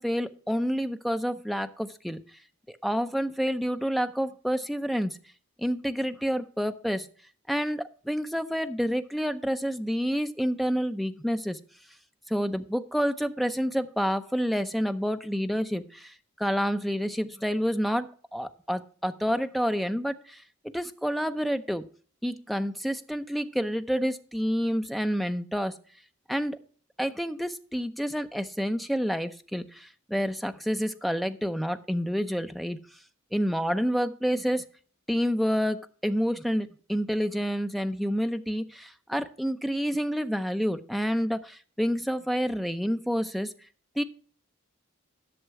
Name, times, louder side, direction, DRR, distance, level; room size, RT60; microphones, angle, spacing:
voice 1, 0.0-2.2 2.8-5.2 5.6-7.1 7.5-11.6 12.3-20.4 20.7-21.8 22.2-25.7 26.3-26.6 27.0-32.8 33.3-34.7 35.1-43.5 44.0-44.1, equal, ahead, 8 dB, 0.6 m, -28 dB
11.0 x 6.6 x 4.7 m, 0.43 s
head